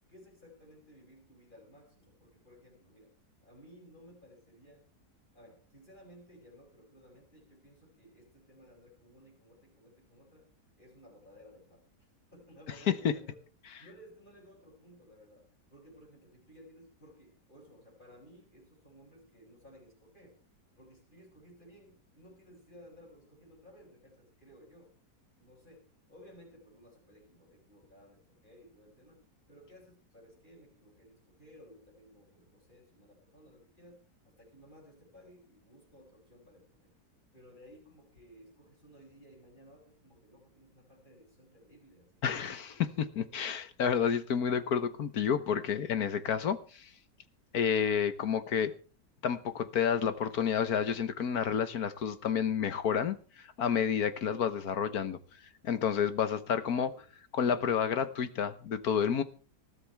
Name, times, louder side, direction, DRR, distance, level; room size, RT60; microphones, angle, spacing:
voice 1, 0.1-3.1 3.4-4.9 5.3-10.5 10.8-11.9 12.3-13.4 13.8-20.4 20.8-25.0 25.3-36.9 37.3-42.3 56.6-57.1, equal, 25° left, 7.9 m, -57 dB
voice 2, 42.2-46.9 47.5-48.7 49.2-53.2 53.6-55.2 55.6-56.9 57.3-59.2, left 7 dB, 65° left, 1.5 m, -30 dB
20.5 x 14.5 x 3.5 m
omnidirectional pair, 1.8 m